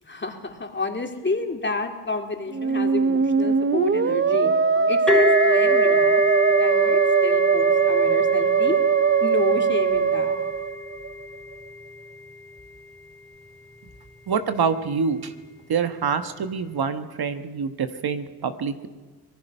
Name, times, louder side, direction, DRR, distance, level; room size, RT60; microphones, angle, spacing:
voice 1, 0.0-4.5 4.9-6.2 6.6-8.8 9.2-10.4, left 3 dB, 25° left, 3 dB, 3.1 m, -30 dB
Musical instrument, 2.5-11.3, right 6 dB, 30° right, 0.9 m, -20 dB
sound 1, 5.1-12.6, left 2 dB, ahead, 3.4 m, -27 dB
voice 2, 14.3-15.3 15.7-18.9, right 6 dB, 60° right, 9 dB, 1.4 m, -26 dB
25.5 x 19.0 x 5.6 m, 1.3 s
cardioid pair, 70°, 43 cm